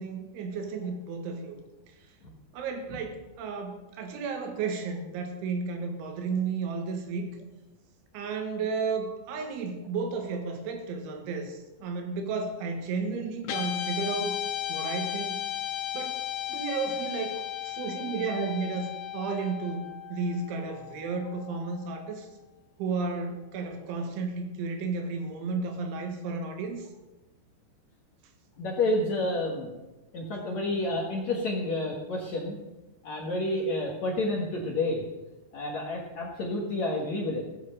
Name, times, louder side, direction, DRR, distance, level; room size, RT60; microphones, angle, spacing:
voice 1, 0.0-1.6 2.5-7.3 8.1-14.4 14.7-15.4 15.9-18.9 19.1-22.3 22.8-26.9, right 4 dB, 85° right, 5 dB, 4.1 m, -33 dB
Guitar, 13.4-21.9, left 12 dB, 70° left, 2.7 m, -35 dB
voice 2, 28.6-29.7 30.1-32.6 33.0-35.0 35.5-37.4, left 2 dB, 55° left, -1 dB, 2.1 m, -29 dB
16.0 x 9.4 x 6.6 m, 1.1 s
omnidirectional pair, 5.3 m